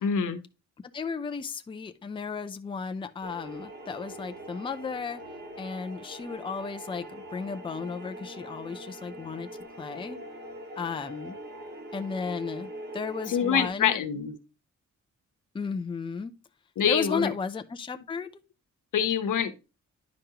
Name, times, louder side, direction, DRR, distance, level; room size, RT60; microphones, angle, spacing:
voice 1, 0.0-0.4 13.3-14.3 16.8-17.3 18.9-19.5, left 7 dB, 85° left, 1.0 m, -25 dB
voice 2, 0.9-5.2 5.6-9.5 9.8-10.2 10.8-11.4 11.9-14.0 15.5-16.3 16.9-18.3, left 5 dB, 15° left, 0.4 m, -34 dB
sound 1, 3.2-13.7, right 1 dB, 35° right, 1.3 m, -42 dB
10.0 x 5.2 x 2.8 m
wide cardioid pair, 155°, 31 cm